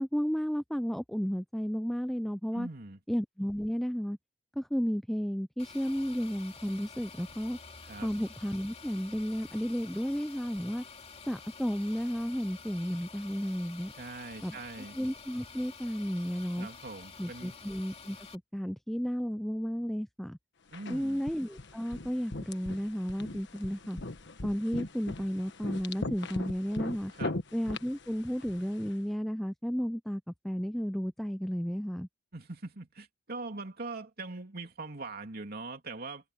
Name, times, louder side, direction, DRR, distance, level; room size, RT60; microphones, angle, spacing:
voice 1, 0.0-2.7 3.1-4.2 4.6-7.6 8.0-10.8 11.3-13.9 14.4-14.6 14.9-16.7 17.2-20.4 20.9-24.0 24.4-27.1 27.5-32.1, equal, ahead, 0.4 m, -33 dB
voice 2, 2.5-3.0 7.8-8.1 14.0-15.0 16.6-17.6 20.7-21.2 27.1-27.4 32.3-36.3, right 3 dB, 55° right, 3.0 m, -42 dB
sound 1, 5.6-18.4, left 5 dB, 35° left, 2.6 m, -49 dB
sound 2, 20.7-28.9, left 2 dB, 65° left, 1.4 m, -40 dB
head